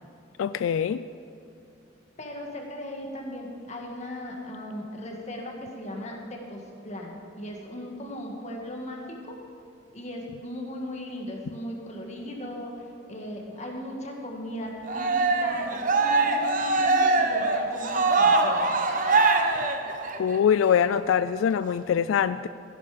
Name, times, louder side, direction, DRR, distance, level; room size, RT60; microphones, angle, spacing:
voice 1, 0.4-1.0 20.2-22.5, left 8 dB, 85° left, 14 dB, 0.3 m, -23 dB
voice 2, 2.2-9.4 9.9-18.6, equal, 35° left, 0 dB, 1.9 m, -37 dB
Cheering, 14.9-20.4, right 3 dB, 45° right, 1.0 m, -23 dB
15.0 x 11.0 x 5.0 m, 2.5 s
head